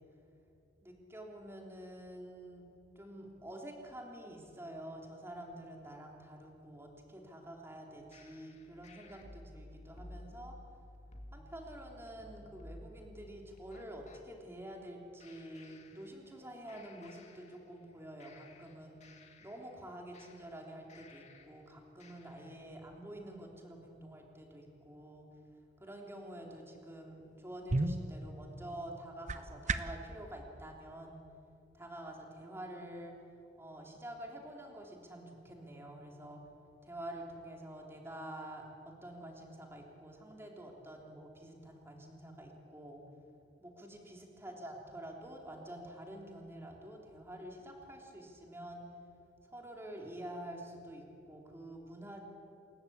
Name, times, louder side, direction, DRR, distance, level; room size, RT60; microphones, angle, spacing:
voice 1, 0.8-2.7 2.9-10.6 11.3-19.1 19.4-25.3 25.8-31.2 31.7-33.2 33.6-36.4 36.8-43.0 43.6-48.9 49.4-52.2, right 1 dB, 15° right, 0 dB, 3.3 m, -48 dB
sound 1, 8.1-14.2 15.2-16.4 16.7-17.9 18.2-21.6 22.0-22.6, left 1 dB, 40° left, 2.1 m, -55 dB
sound 2, 27.2-30.1, right 2 dB, 40° right, 0.9 m, -36 dB
28.5 x 14.0 x 8.7 m, 2.6 s
head